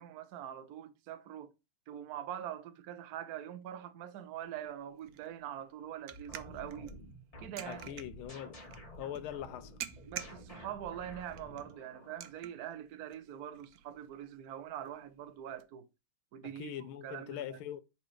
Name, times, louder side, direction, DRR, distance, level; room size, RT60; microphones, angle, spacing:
voice 1, 0.0-1.5 1.9-7.0 7.4-8.0 10.1-15.9 16.3-16.7 17.0-17.6, right 10 dB, 60° right, 1.0 m, -44 dB
sound 1, 4.3-15.6, right 11 dB, 85° right, 0.8 m, -51 dB
sound 2, 6.1-12.3, equal, 20° left, 1.7 m, -51 dB
voice 2, 7.7-8.6 9.0-9.8 16.4-17.8, left 11 dB, 80° left, 1.5 m, -42 dB
5.7 x 4.1 x 4.9 m
omnidirectional pair, 2.3 m